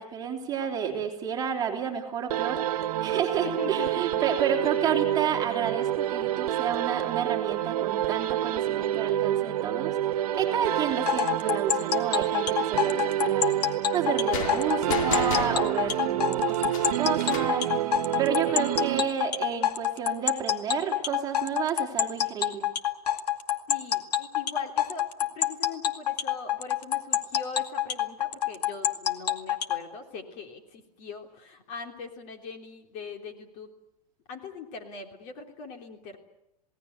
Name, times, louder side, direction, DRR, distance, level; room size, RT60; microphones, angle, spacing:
voice 1, 0.0-22.7, right 8 dB, 20° right, 1 dB, 3.1 m, -31 dB
sound 1, 2.3-19.5, right 12 dB, 65° right, 1.5 m, -28 dB
voice 2, 3.0-4.2 23.7-33.7 34.3-36.2, left 5 dB, 40° left, 5 dB, 3.2 m, -41 dB
sound 2, 11.1-29.8, left 11 dB, 90° left, 2.3 m, -27 dB
sound 3, 14.3-17.7, left 6 dB, 55° left, 2.5 m, -34 dB
29.0 x 18.0 x 8.0 m, 0.87 s
supercardioid pair, 155°, 20 cm